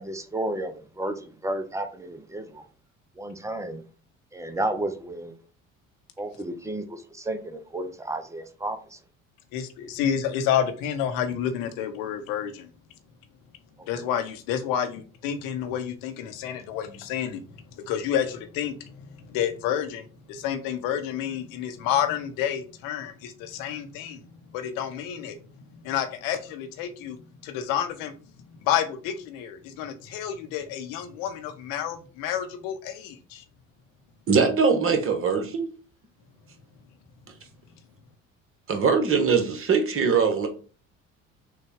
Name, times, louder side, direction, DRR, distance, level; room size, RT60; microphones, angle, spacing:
voice 1, 0.0-2.6 3.2-3.8 4.3-5.3 6.2-8.8 13.9-14.1, right 1 dB, 10° right, 0.5 m, -32 dB
voice 2, 9.5-12.7 13.9-25.4 25.7-28.1 28.6-33.4, left 9 dB, 55° left, 0.8 m, -30 dB
voice 3, 34.3-35.7 38.7-40.5, right 5 dB, 30° right, 1.1 m, -22 dB
6.3 x 2.2 x 3.5 m
figure-of-eight pair, 60°, 40 cm